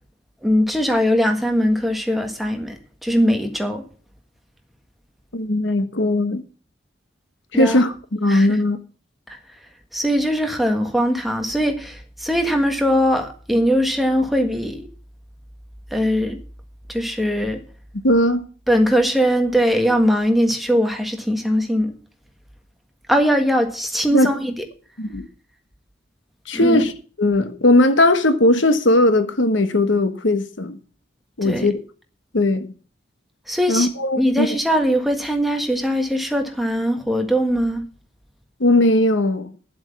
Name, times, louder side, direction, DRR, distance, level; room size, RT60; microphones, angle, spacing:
voice 1, 0.4-3.8 7.5-7.8 8.3-8.5 9.3-9.4 9.9-14.9 15.9-16.4 16.9-17.6 18.7-21.9 23.1-24.5 26.5-26.8 31.4-31.7 33.5-33.9 34.2-37.8, equal, ahead, 1.5 m, -20 dB
voice 2, 5.3-6.4 7.5-8.8 18.0-18.5 24.1-24.3 25.0-25.3 26.5-26.9 27.2-30.8 31.4-31.8 32.3-32.7 33.7-34.5 38.6-39.5, left 1 dB, 80° left, 1.2 m, -18 dB
10.5 x 7.9 x 6.9 m
head